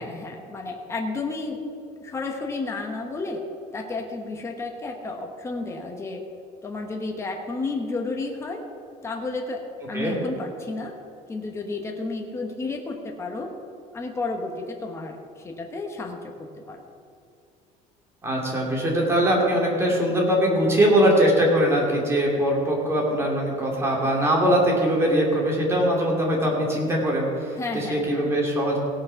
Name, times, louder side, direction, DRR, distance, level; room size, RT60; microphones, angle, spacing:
voice 1, 0.0-1.6 2.0-3.4 3.7-6.2 6.6-8.7 9.0-10.9 11.3-13.5 13.9-16.3 16.7-16.8 27.6-28.3, left 3 dB, 20° left, 2 dB, 1.1 m, -32 dB
voice 2, 18.2-28.8, equal, 15° right, -2 dB, 2.7 m, -22 dB
17.0 x 6.3 x 5.8 m, 2.4 s
cardioid pair, 145°, 15 cm